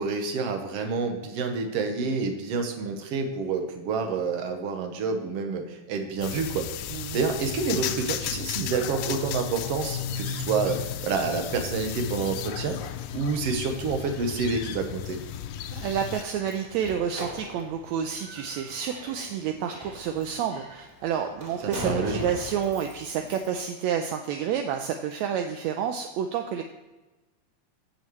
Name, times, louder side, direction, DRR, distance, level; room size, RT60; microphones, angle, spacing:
voice 1, 0.0-6.9 7.1-12.8 13.1-15.2 21.6-22.2, right 4 dB, 60° right, 5 dB, 2.0 m, -28 dB
sound 1, 6.2-16.2, left 9 dB, 90° left, 2.1 m, -34 dB
voice 2, 15.7-26.6, right 8 dB, 80° right, 5 dB, 1.8 m, -29 dB
Slam, 16.1-23.6, equal, 20° right, 3.0 m, -40 dB
15.5 x 6.5 x 3.2 m, 1.1 s
omnidirectional pair, 3.4 m